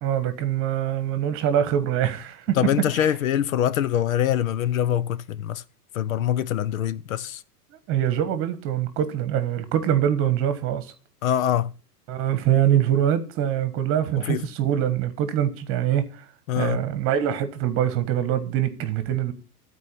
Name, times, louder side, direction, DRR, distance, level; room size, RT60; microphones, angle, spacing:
voice 1, 0.0-2.6 2.9-3.1 7.9-10.9 12.1-16.2 16.6-19.3, right 10 dB, 30° right, 1.3 m, -24 dB
voice 2, 2.5-5.6 5.9-7.4 11.2-11.7 14.2-14.5 16.5-16.8, left 10 dB, 60° left, 0.7 m, -24 dB
12.5 x 4.7 x 8.4 m
hypercardioid pair, 140°, 47 cm